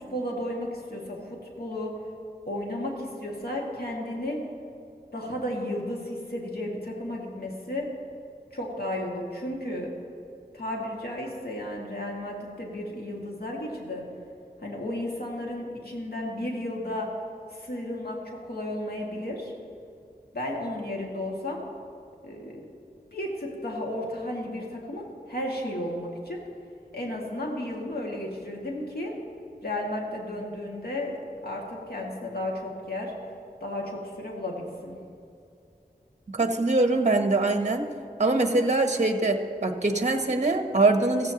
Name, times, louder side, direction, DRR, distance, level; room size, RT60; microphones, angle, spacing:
voice 1, 0.0-1.9 2.5-4.4 5.1-7.9 8.5-9.9 10.5-14.0 14.6-17.1 17.5-19.5 20.3-21.6 22.2-22.7 23.1-26.4 26.9-29.1 29.6-31.2 31.4-33.1 33.6-35.0, left 1 dB, 70° left, -2 dB, 2.1 m, -33 dB
voice 2, 36.3-37.9 38.2-41.3, right 2 dB, 45° right, 6 dB, 1.0 m, -23 dB
15.5 x 15.0 x 2.9 m, 2.5 s
wide cardioid pair, 65°, 17 cm